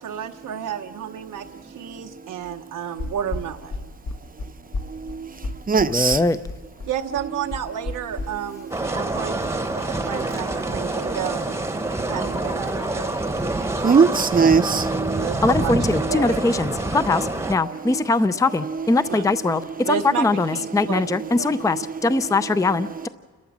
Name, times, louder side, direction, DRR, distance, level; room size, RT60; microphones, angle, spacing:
voice 1, 0.0-3.9 6.9-9.4 9.7-11.5 12.1-13.3 15.1-16.4 19.1-19.2 19.8-21.9 22.3-22.4, right 9 dB, 90° right, 0.9 m, -31 dB
sound 1, 3.0-8.3, left 2 dB, 65° left, 2.1 m, -31 dB
voice 2, 4.9-5.3 5.7-6.2 11.9-12.1 13.0-13.1 13.5-15.3 16.8-16.9 17.6-18.0 18.6-18.9 21.5-22.0, right 5 dB, 30° right, 0.7 m, -21 dB
voice 3, 5.9-6.4 15.4-19.6 19.9-23.1, left 3 dB, 10° left, 0.5 m, -21 dB
sound 2, 8.7-17.6, right 2 dB, 10° right, 1.0 m, -26 dB
29.5 x 13.0 x 7.3 m
wide cardioid pair, 125°, 31 cm